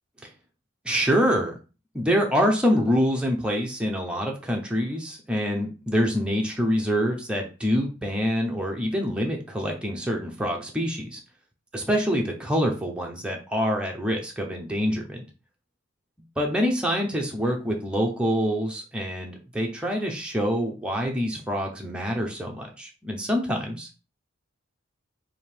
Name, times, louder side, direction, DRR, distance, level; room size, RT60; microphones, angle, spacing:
voice 1, 0.8-1.5 1.9-11.2 11.7-15.2 16.4-23.9, equal, 5° right, 0 dB, 0.7 m, -26 dB
3.5 x 2.8 x 4.5 m, 0.33 s
head